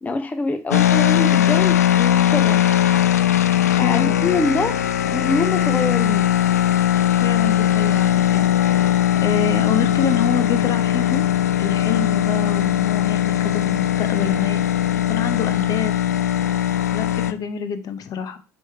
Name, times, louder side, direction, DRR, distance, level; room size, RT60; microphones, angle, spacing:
voice 1, 0.0-2.7 3.8-4.8 5.1-6.3, left 3 dB, 20° left, 0.5 m, -24 dB
sound 1, 0.7-17.3, left 11 dB, 85° left, 0.4 m, -19 dB
voice 2, 3.7-4.3 7.1-11.3 11.6-14.6 15.1-16.0 16.9-18.4, left 7 dB, 45° left, 0.9 m, -27 dB
7.6 x 3.2 x 4.5 m
figure-of-eight pair, 60°, 8 cm